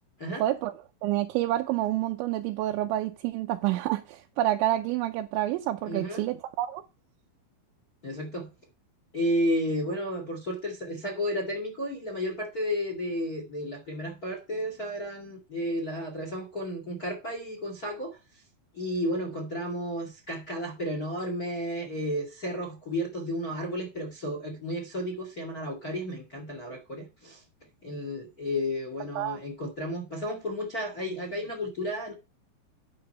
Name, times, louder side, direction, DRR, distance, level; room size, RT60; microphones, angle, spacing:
voice 1, 0.4-0.7 1.0-6.8 29.2-29.4, right 14 dB, 80° right, 2.8 m, -28 dB
voice 2, 5.8-6.3 8.0-8.5 9.1-18.4 18.7-27.4 27.8-32.1, equal, 45° left, 1.2 m, -32 dB
11.5 x 5.4 x 5.4 m
omnidirectional pair, 5.6 m